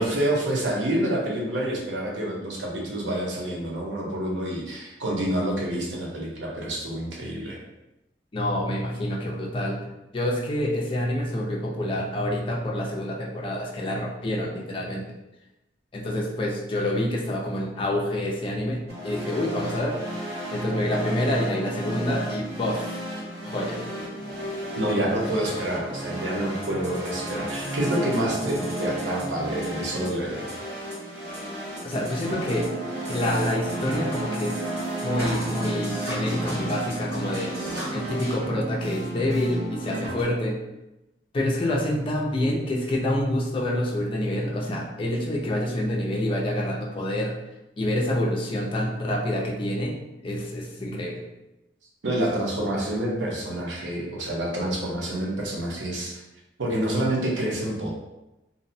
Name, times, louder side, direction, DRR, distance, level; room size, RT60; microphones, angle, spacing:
voice 1, 0.0-7.6 24.7-30.5 52.0-56.2 56.6-57.9, right 1 dB, 90° right, -3 dB, 0.7 m, -28 dB
voice 2, 8.3-15.0 15.9-20.0 20.5-23.0 23.4-23.9 31.8-32.7 33.1-34.7 35.0-37.5 37.9-40.6 41.3-47.4 47.8-51.2, left 1 dB, 30° left, -2 dB, 0.4 m, -27 dB
sound 1, 18.9-38.4, right 1 dB, 60° right, 1.1 m, -33 dB
sound 2, 32.2-40.2, right 2 dB, 35° right, 0.5 m, -34 dB
2.6 x 2.1 x 2.6 m, 0.96 s
head